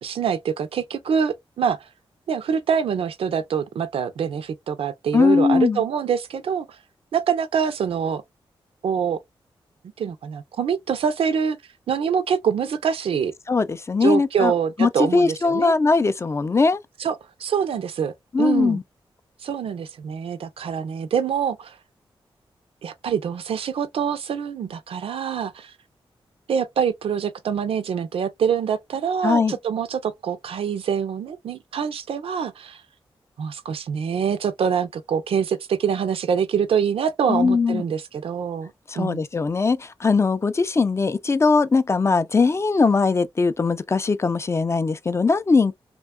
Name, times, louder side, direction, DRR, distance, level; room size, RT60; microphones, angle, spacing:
voice 1, 0.0-1.8 2.3-6.7 7.1-8.2 8.8-9.2 10.0-11.6 11.9-13.3 14.0-15.7 17.0-18.1 18.4-18.8 19.4-21.7 22.8-25.7 26.5-32.8 33.4-38.7 39.0-39.2, right 7 dB, 80° right, 0.5 m, -25 dB
voice 2, 5.1-5.8 13.5-14.5 14.8-16.8 18.3-18.8 29.2-29.5 37.3-37.8 38.9-45.8, left 4 dB, 30° left, 0.3 m, -20 dB
2.7 x 2.2 x 2.2 m
cardioid pair, 65°, 10 cm